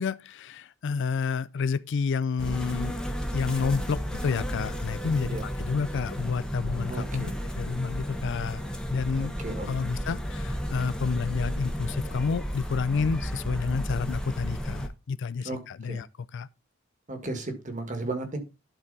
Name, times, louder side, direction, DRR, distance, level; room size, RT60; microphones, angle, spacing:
voice 1, 0.0-3.0 3.3-8.6 8.9-9.3 9.7-16.5, left 5 dB, 60° left, 0.4 m, -30 dB
sound 1, 2.4-14.9, equal, 5° left, 1.1 m, -33 dB
voice 2, 6.9-7.4 9.2-9.9 15.4-15.6 15.9-16.0 17.1-18.4, right 2 dB, 40° right, 1.9 m, -35 dB
11.5 x 4.4 x 4.1 m
head